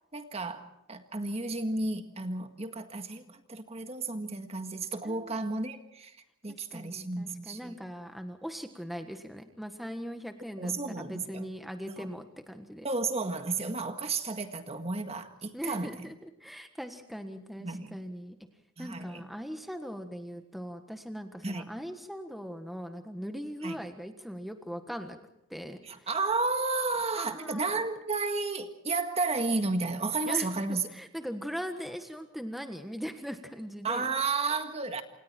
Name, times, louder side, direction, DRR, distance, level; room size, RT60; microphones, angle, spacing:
voice 1, 0.1-6.1 6.4-7.7 10.6-11.5 12.0-12.1 12.8-16.1 17.6-18.0 18.8-19.2 21.4-21.7 23.6-23.8 25.8-30.9 33.8-35.0, right 3 dB, 30° right, 1.7 m, -32 dB
voice 2, 5.0-5.4 6.5-12.9 15.5-18.4 18.8-25.2 25.5-26.1 27.2-27.7 30.2-34.1, equal, ahead, 1.5 m, -40 dB
28.0 x 27.5 x 4.5 m
head